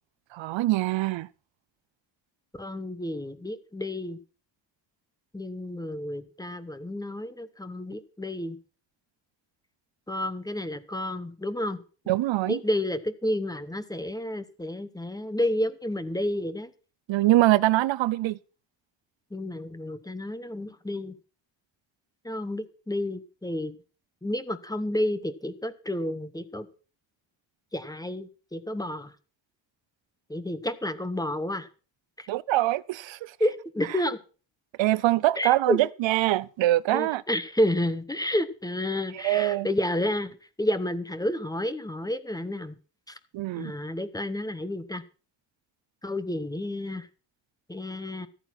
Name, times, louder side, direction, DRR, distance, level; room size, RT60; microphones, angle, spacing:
voice 1, 0.3-1.3 12.1-12.6 17.1-18.4 32.3-33.3 34.8-37.2 39.2-39.7 43.3-43.7, right 16 dB, 75° right, 0.6 m, -24 dB
voice 2, 2.6-4.2 5.3-8.6 10.1-11.8 12.5-16.7 19.3-21.2 22.2-23.7 24.2-26.7 27.7-29.1 30.3-31.7 32.2-32.3 33.4-34.2 35.4-35.8 36.9-40.3 40.6-42.8 43.1-43.2 43.5-45.0 46.0-47.1 47.7-48.3, left 1 dB, 10° left, 1.0 m, -30 dB
14.0 x 8.9 x 5.9 m
cardioid pair, 140°, 45 cm